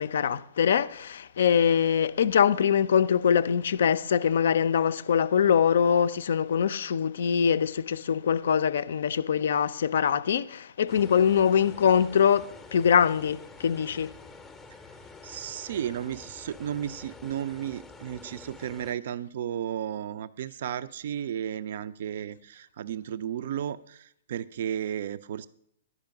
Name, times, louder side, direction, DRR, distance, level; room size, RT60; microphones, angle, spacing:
voice 1, 0.0-14.1, left 7 dB, 55° left, 0.4 m, -23 dB
sound 1, 10.9-18.9, left 3 dB, 10° left, 0.6 m, -48 dB
voice 2, 15.2-25.5, right 10 dB, 50° right, 0.3 m, -34 dB
11.0 x 5.0 x 6.4 m
figure-of-eight pair, 115°, 0 cm